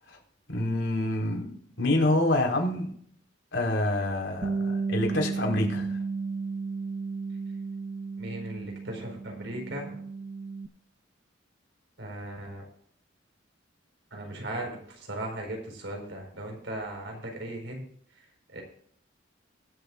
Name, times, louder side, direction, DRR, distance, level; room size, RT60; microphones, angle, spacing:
voice 1, 0.5-1.5 1.8-2.9 3.5-6.0, left 1 dB, 75° left, -1 dB, 4.4 m, -27 dB
Bass guitar, 4.4-10.7, right 4 dB, 40° right, 0.6 m, -33 dB
voice 2, 8.2-10.0 12.0-12.6 14.1-17.9 18.5-18.6, right 1 dB, 70° right, 2 dB, 4.5 m, -37 dB
23.0 x 7.9 x 2.5 m, 0.62 s
head